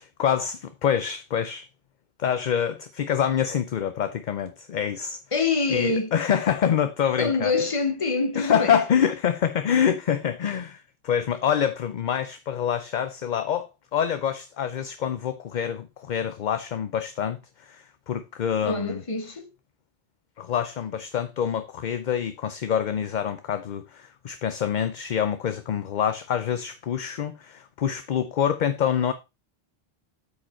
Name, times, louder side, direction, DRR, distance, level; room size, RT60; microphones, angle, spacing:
voice 1, 0.0-1.7 2.2-5.2 5.7-7.5 8.4-19.0 20.4-29.1, left 8 dB, 55° left, 0.7 m, -26 dB
voice 2, 5.3-6.1 7.2-8.8 18.6-19.5, left 3 dB, 35° left, 1.1 m, -25 dB
8.2 x 5.1 x 4.3 m
omnidirectional pair, 1.0 m